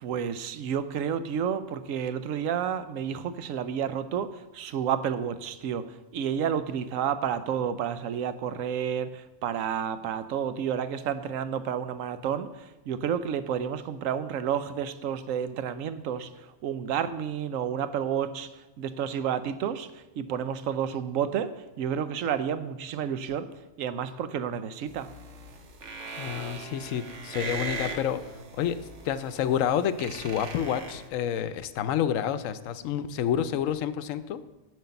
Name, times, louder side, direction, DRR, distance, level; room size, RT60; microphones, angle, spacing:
voice 1, 0.0-23.5 23.8-25.1, right 8 dB, 90° right, 12 dB, 1.0 m, -30 dB
sound 1, 24.9-31.1, right 3 dB, 65° right, 1.3 m, -40 dB
voice 2, 26.2-28.3 28.6-34.4, left 9 dB, 85° left, 13 dB, 1.0 m, -29 dB
7.8 x 7.2 x 6.8 m, 1.1 s
omnidirectional pair, 1.3 m